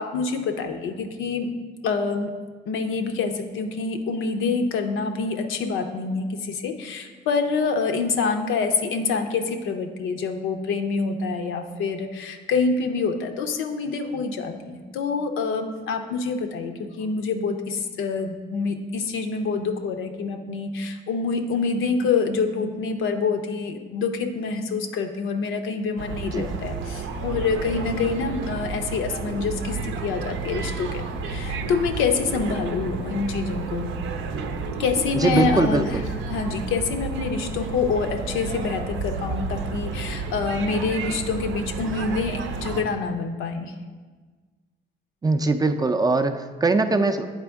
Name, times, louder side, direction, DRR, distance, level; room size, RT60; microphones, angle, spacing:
voice 1, 0.0-1.5 1.8-2.3 2.7-33.9 34.8-35.8 36.3-43.7, left 4 dB, 85° left, 5 dB, 0.6 m, -26 dB
sound 1, 26.0-42.8, right 4 dB, 80° right, 0.6 m, -31 dB
voice 2, 35.1-36.1 45.2-47.3, right 3 dB, 20° right, 7 dB, 0.4 m, -21 dB
8.9 x 4.2 x 3.5 m, 1.4 s
cardioid pair, 90°, 20 cm